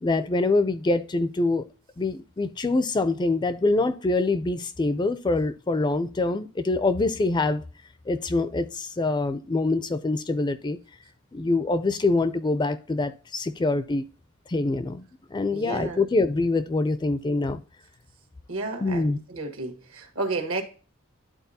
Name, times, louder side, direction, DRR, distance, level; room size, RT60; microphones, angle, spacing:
voice 1, 0.0-1.7 2.0-7.6 8.1-10.8 11.3-14.0 14.5-15.0 15.3-17.6 18.8-19.2, left 2 dB, 20° left, 0.4 m, -25 dB
voice 2, 15.5-16.0 18.5-19.0 19.3-20.6, right 3 dB, 70° right, 1.5 m, -31 dB
11.5 x 4.2 x 2.7 m
head